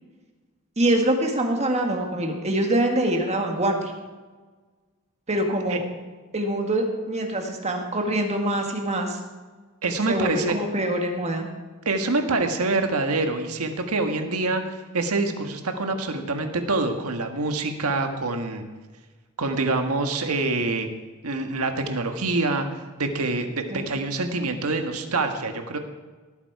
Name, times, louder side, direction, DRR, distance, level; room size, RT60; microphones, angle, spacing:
voice 1, 0.8-3.9 5.3-5.8 6.3-9.2 10.1-11.5 23.7-23.9, right 1 dB, 30° right, 3 dB, 1.9 m, -24 dB
voice 2, 9.8-10.6 11.8-14.6 14.9-18.6 19.4-20.9 21.2-22.7 23.0-25.8, right 3 dB, 90° right, 5 dB, 1.5 m, -25 dB
18.5 x 8.6 x 4.8 m, 1.3 s
head